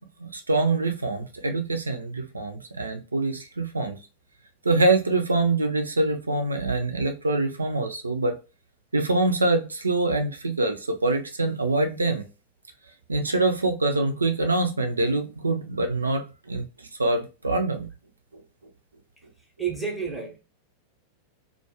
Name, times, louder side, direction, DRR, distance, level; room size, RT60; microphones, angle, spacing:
voice 1, 0.2-4.0 4.6-8.4 8.9-12.2 13.1-16.7 17.0-17.9, right 2 dB, 80° right, 0.5 m, -25 dB
voice 2, 19.6-20.4, right 6 dB, ahead, 0.8 m, -30 dB
2.3 x 2.1 x 2.9 m
figure-of-eight pair, 90°, 0 cm